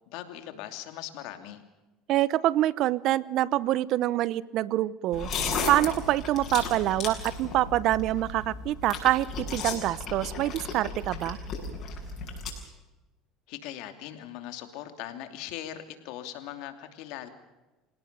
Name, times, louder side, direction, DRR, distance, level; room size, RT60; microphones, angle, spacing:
voice 1, 0.1-1.6 13.5-17.3, left 12 dB, 70° left, 8 dB, 2.8 m, -40 dB
voice 2, 2.1-5.3 5.7-11.4, right 14 dB, 60° right, 20 dB, 0.8 m, -26 dB
sound 1, 5.1-12.5, left 4 dB, 50° left, 7.5 m, -35 dB
27.0 x 18.0 x 6.9 m, 1.1 s
supercardioid pair, 100°, 0 cm